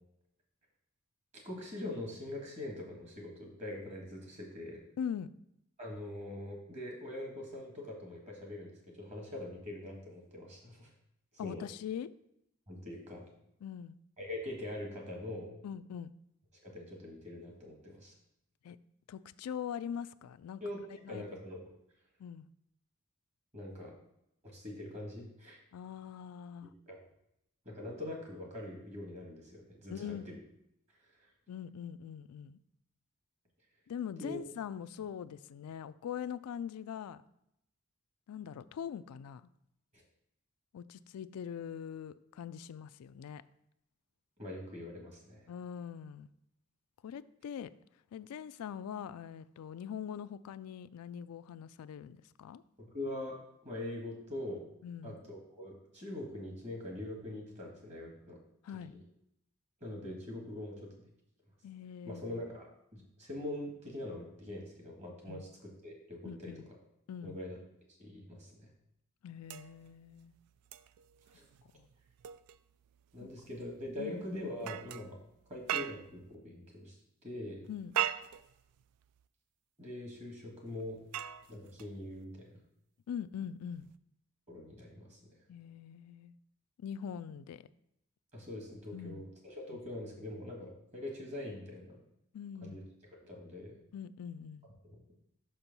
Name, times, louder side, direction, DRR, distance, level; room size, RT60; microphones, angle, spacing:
voice 1, 1.3-4.8 5.8-10.9 11.4-11.7 12.7-13.2 14.2-15.5 16.6-18.1 20.6-20.8 21.1-21.6 23.5-24.0 24.4-25.6 26.9-27.0 27.6-30.4 34.2-34.4 39.9-40.0 44.4-45.5 52.8-54.6 55.0-58.4 58.9-59.0 59.8-60.9 62.0-66.8 67.2-67.6 68.0-68.7 71.3-71.4 73.1-75.2 75.5-76.9 77.2-77.6 79.8-81.0 81.5-82.6 84.5-85.2 88.3-92.0 92.6-92.8 93.1-93.8 94.8-95.0, left 1 dB, 30° right, 0 dB, 1.6 m, -43 dB
voice 2, 5.0-5.3 11.4-12.1 13.6-14.0 15.6-16.1 18.6-18.8 19.1-20.6 21.0-21.3 22.2-22.5 25.7-26.7 29.9-30.3 31.5-32.6 33.9-37.2 38.3-39.5 40.7-43.4 45.5-46.3 47.0-47.7 48.1-52.6 54.8-55.2 58.6-58.9 61.6-62.2 65.3-65.4 66.2-66.6 67.1-67.4 69.2-70.3 71.7-71.9 73.2-73.3 74.0-74.2 77.7-77.9 83.1-83.9 85.5-86.3 86.8-87.7 88.9-89.2 89.7-89.8 92.3-92.8 93.9-94.7, left 8 dB, 85° left, 15 dB, 0.3 m, -42 dB
sound 1, 69.4-76.3 77.6-79.2 80.7-82.2 83.7-83.9, right 11 dB, 90° right, 0.3 m, -41 dB
6.3 x 4.4 x 5.3 m, 0.80 s
head